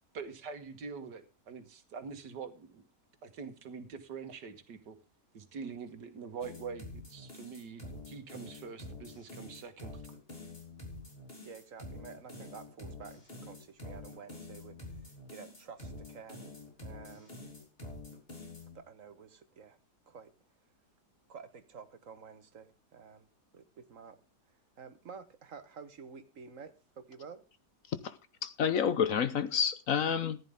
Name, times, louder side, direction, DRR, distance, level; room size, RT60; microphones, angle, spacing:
voice 1, 0.1-2.9 3.2-5.0 5.3-10.0, right 5 dB, 90° right, 2.0 m, -44 dB
sound 1, 6.4-18.8, left 2 dB, 35° left, 3.8 m, -47 dB
voice 2, 11.4-16.4 16.8-17.4 18.7-19.8 20.1-20.3 21.3-23.3 23.5-24.2 24.8-27.4, right 6 dB, 50° right, 1.6 m, -50 dB
voice 3, 27.9-30.4, left 7 dB, 60° left, 1.1 m, -30 dB
14.5 x 10.5 x 3.5 m
omnidirectional pair, 1.8 m